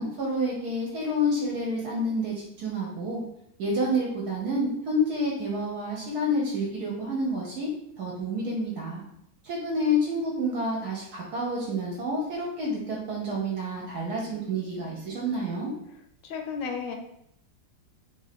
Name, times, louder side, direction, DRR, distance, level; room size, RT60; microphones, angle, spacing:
voice 1, 0.0-3.2 3.6-7.7 8.0-9.0 9.4-15.7, equal, 65° right, -3 dB, 1.1 m, -29 dB
voice 2, 16.2-17.0, left 5 dB, 75° left, 4 dB, 1.2 m, -33 dB
3.0 x 2.7 x 4.0 m, 0.76 s
omnidirectional pair, 2.0 m